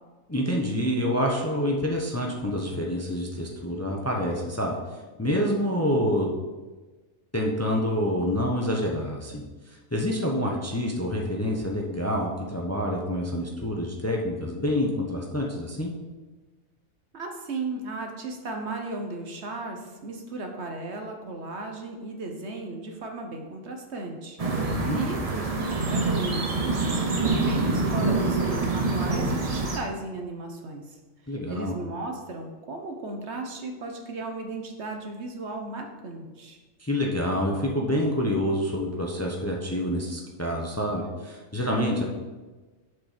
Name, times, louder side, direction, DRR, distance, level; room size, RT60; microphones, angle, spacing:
voice 1, 0.3-4.8 5.2-6.3 7.3-15.9 24.6-25.0 31.3-31.7 36.8-42.1, equal, 15° left, 0 dB, 0.8 m, -27 dB
voice 2, 17.1-36.6, right 2 dB, 55° right, 3 dB, 1.2 m, -36 dB
sound 1, 24.4-29.8, right 3 dB, 35° right, 0.7 m, -26 dB
7.3 x 5.3 x 5.1 m, 1.2 s
omnidirectional pair, 1.4 m